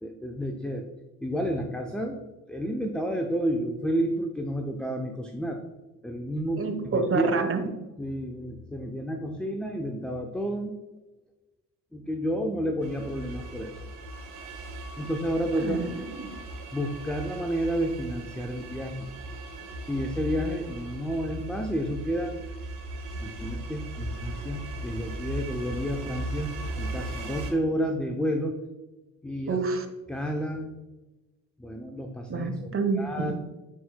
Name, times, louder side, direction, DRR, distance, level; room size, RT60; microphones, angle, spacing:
voice 1, 0.0-0.9 1.2-2.2 2.5-5.6 6.0-6.7 6.9-7.5 8.0-10.7 11.9-13.8 15.0-15.8 16.7-19.1 19.9-22.3 23.2-28.6 29.2-29.6 30.1-30.7 31.6-32.5 33.0-33.3, equal, ahead, 3 dB, 0.6 m, -30 dB
voice 2, 6.6-7.6 15.6-16.4 29.5-29.9 32.3-33.3, right 4 dB, 30° right, 6 dB, 1.1 m, -28 dB
sound 1, 12.8-27.5, right 1 dB, 70° right, 1.3 m, -38 dB
10.0 x 4.3 x 2.2 m, 1.1 s
hypercardioid pair, 45°, 44 cm